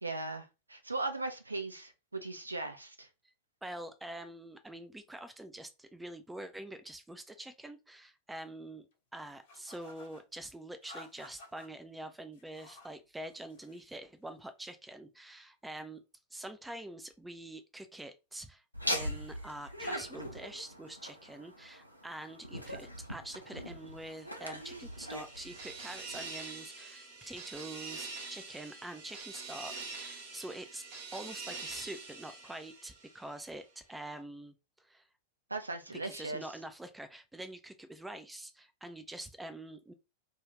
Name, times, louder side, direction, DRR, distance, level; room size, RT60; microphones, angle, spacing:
voice 1, 0.0-3.1 35.5-36.5, right 3 dB, 80° right, 0.5 m, -38 dB
voice 2, 3.6-8.9 9.1-16.0 16.3-18.6 18.9-30.8 31.1-35.1 35.9-39.9, right 1 dB, 5° right, 0.4 m, -45 dB
sound 1, 9.4-10.2 10.8-11.7 12.3-13.0 13.3-13.9, left 1 dB, 55° left, 0.8 m, -53 dB
Laughter, 18.7-26.4, equal, 90° left, 0.5 m, -41 dB
sound 2, 24.3-33.5, right 4 dB, 50° right, 0.8 m, -45 dB
2.4 x 2.3 x 3.1 m
figure-of-eight pair, 90°, 0 cm